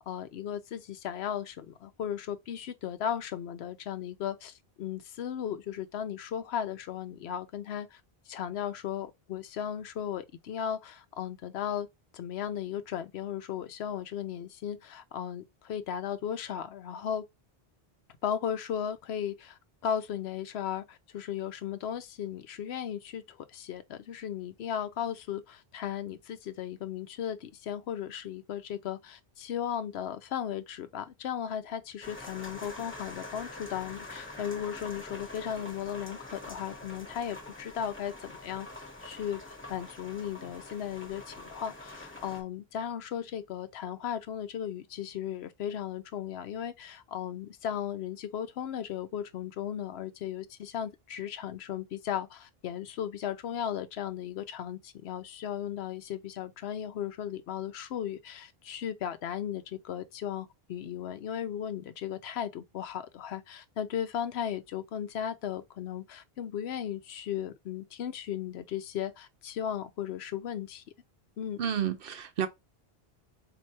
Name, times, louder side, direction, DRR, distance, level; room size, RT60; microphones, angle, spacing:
voice 1, 0.0-8.0 8.3-11.9 12.1-17.3 18.2-38.7 39.0-70.8 71.4-71.6, left 9 dB, 85° left, 0.9 m, -36 dB
sound 1, 32.0-42.4, left 2 dB, 15° left, 0.8 m, -45 dB
voice 2, 71.6-72.5, right 9 dB, 65° right, 0.8 m, -30 dB
4.4 x 2.7 x 2.7 m
omnidirectional pair, 1.0 m